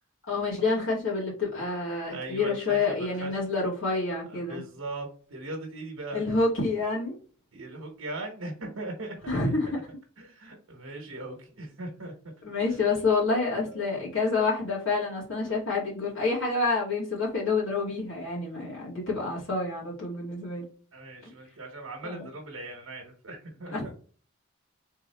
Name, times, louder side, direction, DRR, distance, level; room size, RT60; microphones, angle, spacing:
voice 1, 0.3-4.6 6.1-7.2 9.3-9.8 12.4-20.6 21.2-21.3 22.0-22.3 23.7-23.9, left 3 dB, 70° left, -7 dB, 2.4 m, -28 dB
voice 2, 2.1-3.3 4.3-6.2 7.5-9.4 10.2-12.3 12.6-12.7 13.7-13.8 20.9-23.7, right 2 dB, 80° right, 1 dB, 1.1 m, -39 dB
3.7 x 3.6 x 3.4 m, 0.40 s
head